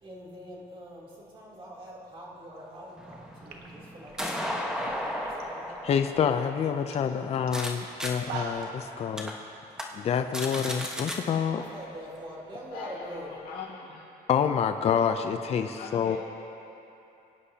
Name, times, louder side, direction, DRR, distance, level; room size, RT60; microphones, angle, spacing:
voice 1, 0.0-5.7 11.7-13.3, equal, 30° right, -5 dB, 3.1 m, -44 dB
sound 1, 3.0-7.7 8.0-8.1 8.6-8.7 9.2-9.3 9.7-9.8 10.1-11.2, equal, 5° right, 1.3 m, -35 dB
sound 2, 3.0-3.1 3.4-5.4 5.7-6.2 6.6-6.7 6.9-7.1 7.5-7.6 8.0-8.8, right 3 dB, 65° right, 1.4 m, -41 dB
voice 2, 5.8-9.3 9.9-11.6 14.3-16.2, left 7 dB, 40° left, 7 dB, 0.5 m, -27 dB
voice 3, 12.7-14.0 15.8-16.2, left 5 dB, 65° left, -7 dB, 2.0 m, -41 dB
21.5 x 9.7 x 2.8 m, 2.8 s
cardioid pair, 110°, 17 cm